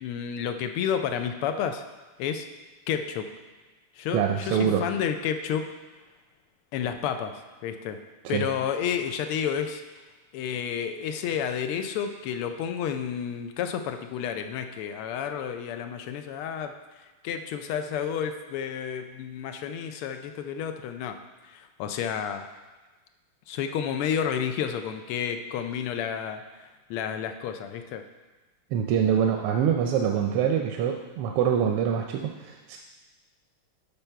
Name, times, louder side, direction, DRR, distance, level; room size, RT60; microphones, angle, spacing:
voice 1, 0.0-1.8 2.2-2.5 2.9-3.2 4.0-5.7 6.7-8.0 8.3-9.8 10.3-16.7 17.2-21.2 21.5-22.4 23.5-28.0, left 8 dB, 85° left, 7 dB, 1.5 m, -30 dB
voice 2, 4.1-4.8 8.2-8.5 28.7-32.8, right 8 dB, 85° right, 2 dB, 1.5 m, -25 dB
7.1 x 5.4 x 4.5 m, 1.3 s
omnidirectional pair, 2.4 m